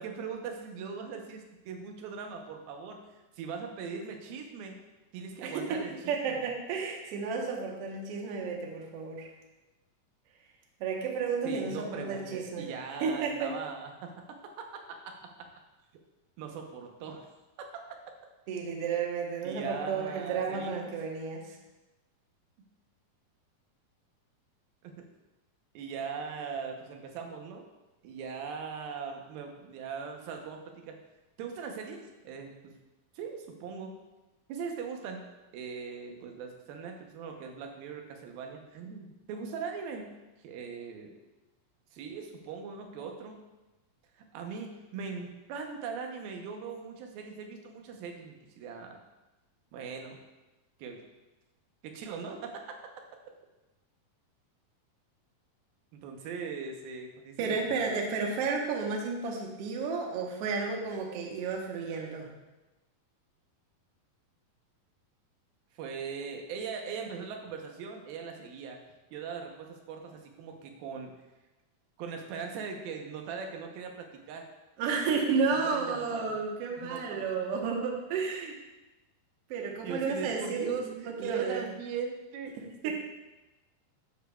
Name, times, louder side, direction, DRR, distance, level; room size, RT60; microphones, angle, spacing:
voice 1, 0.0-4.8 5.1-6.4 11.4-15.5 16.4-17.7 19.4-20.9 24.8-25.1 25.7-27.7 28.0-31.0 31.4-32.8 33.1-33.9 34.5-35.2 35.5-40.1 40.4-41.2 41.9-43.4 44.1-49.0 49.7-50.2 50.8-51.0 51.8-52.8 55.9-57.8 65.7-68.8 69.1-71.1 72.0-74.5 75.5-76.4 76.8-77.4 79.8-82.9, right 5 dB, 85° right, 3 dB, 2.8 m, -40 dB
voice 2, 6.1-9.3 10.8-12.7 13.0-13.5 18.5-21.6 57.4-62.3 74.8-78.5 79.5-81.6 82.8-82.9, right 5 dB, 70° right, 0 dB, 1.5 m, -32 dB
11.5 x 7.0 x 2.3 m, 1.1 s
omnidirectional pair, 4.2 m